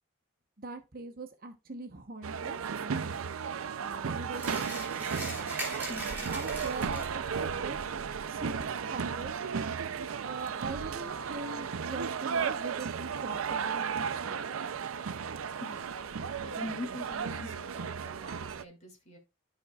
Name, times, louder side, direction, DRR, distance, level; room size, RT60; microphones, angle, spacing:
voice 1, 0.6-3.1 3.8-5.5 6.3-9.4 10.2-14.5, right 3 dB, 45° right, 5 dB, 0.9 m, -42 dB
sound 1, 2.2-18.6, right 6 dB, 85° right, 0.5 m, -34 dB
sound 2, 4.3-7.3, right 1 dB, 10° right, 3.6 m, -40 dB
voice 2, 5.9-6.3 15.6-16.0 16.4-19.2, left 2 dB, 35° left, 1 dB, 2.4 m, -43 dB
13.0 x 5.2 x 2.3 m, 0.27 s
head